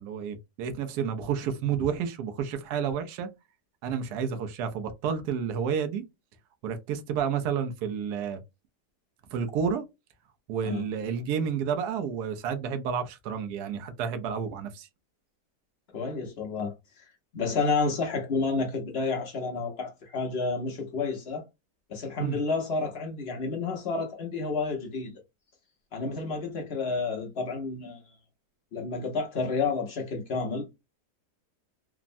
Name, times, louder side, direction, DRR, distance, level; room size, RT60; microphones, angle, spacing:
voice 1, 0.0-3.3 3.8-6.0 6.6-8.4 9.3-9.8 10.5-14.9 22.2-22.4, right 7 dB, 75° right, 1.1 m, -30 dB
voice 2, 15.9-17.1 17.3-21.4 21.9-25.1 25.9-28.0 28.7-30.6, left 4 dB, 55° left, 0.7 m, -30 dB
3.5 x 2.0 x 2.5 m
omnidirectional pair, 1.8 m